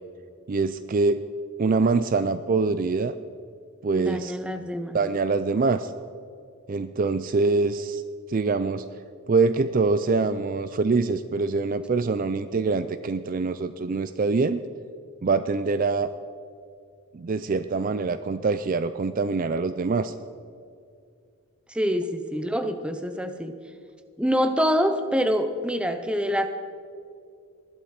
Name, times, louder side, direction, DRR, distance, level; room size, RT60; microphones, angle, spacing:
voice 1, 0.5-1.2 1.6-3.2 3.8-4.4 4.9-5.9 6.7-8.0 8.3-8.9 9.3-14.6 15.2-16.1 17.1-20.1, right 4 dB, 40° right, 12 dB, 0.3 m, -24 dB
voice 2, 3.9-5.0 21.7-23.6 24.2-26.5, equal, 5° right, 9 dB, 0.6 m, -25 dB
19.5 x 12.0 x 4.3 m, 2.3 s
head